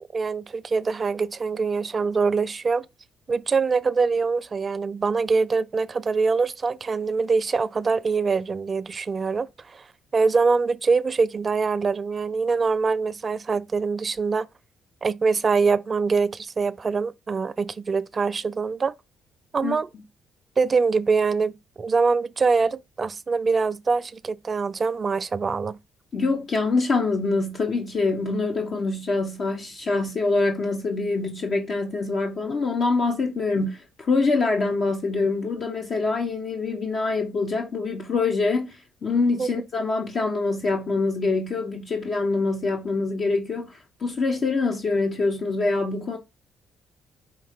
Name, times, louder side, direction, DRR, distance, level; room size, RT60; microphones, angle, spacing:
voice 1, 0.0-2.9 3.3-9.8 10.1-14.5 15.0-18.9 19.5-19.9 20.6-25.8 39.4-39.5, right 4 dB, 40° right, 0.4 m, -24 dB
voice 2, 26.1-38.8 39.0-46.2, left 3 dB, 55° left, 0.9 m, -25 dB
5.3 x 2.7 x 3.6 m
hypercardioid pair, 55°, 0 cm